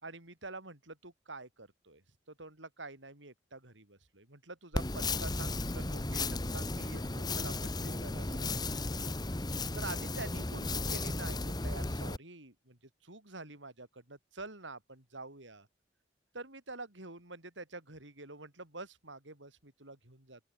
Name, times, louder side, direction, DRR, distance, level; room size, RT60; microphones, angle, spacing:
voice 1, 0.0-2.0 2.3-8.8 9.7-15.7 16.3-20.4, right 3 dB, 90° right, 6.5 m, -47 dB
sound 1, 4.7-12.2, left 2 dB, 20° left, 1.3 m, -35 dB
open air
head